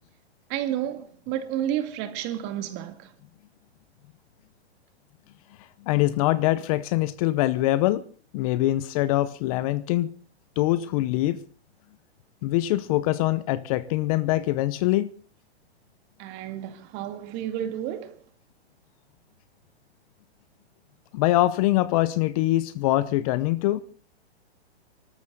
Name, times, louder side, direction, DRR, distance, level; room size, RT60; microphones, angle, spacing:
voice 1, 0.5-3.1 16.2-18.2, right 11 dB, 35° right, 2.2 m, -31 dB
voice 2, 5.8-8.0 8.3-10.1 10.6-11.4 12.4-15.1 21.1-23.8, left 16 dB, 35° left, 0.7 m, -23 dB
24.5 x 13.5 x 4.0 m
hypercardioid pair, 135°, 33 cm